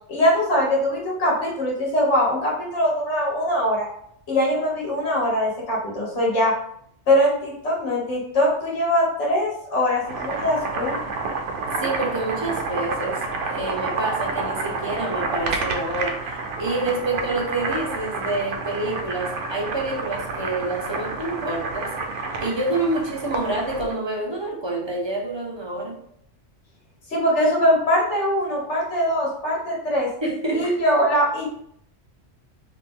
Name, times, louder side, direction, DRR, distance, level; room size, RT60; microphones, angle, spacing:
voice 1, 0.1-3.9 4.3-6.5 7.1-11.0 27.1-30.1 30.5-31.5, equal, 70° left, -4 dB, 1.5 m, -22 dB
Boiling, 9.9-24.0, right 3 dB, 75° right, 0.9 m, -29 dB
voice 2, 11.8-21.9 22.4-26.0 30.2-30.7, right 2 dB, 30° right, -2 dB, 0.5 m, -27 dB
3.0 x 2.9 x 3.6 m, 0.69 s
omnidirectional pair, 1.2 m